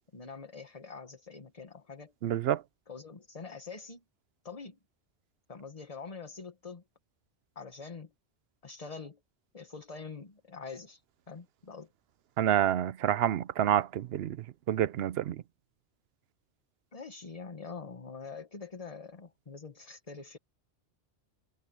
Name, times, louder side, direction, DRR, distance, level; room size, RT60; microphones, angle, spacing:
voice 1, 0.1-2.1 2.9-4.0 4.4-4.8 5.5-6.8 7.5-8.1 8.6-9.2 9.5-11.0 11.3-11.9 16.9-20.4, left 4 dB, 35° left, 1.3 m, -45 dB
voice 2, 2.2-2.6 12.4-14.4 14.7-15.4, right 11 dB, 70° right, 0.8 m, -28 dB
omnidirectional pair, 1.1 m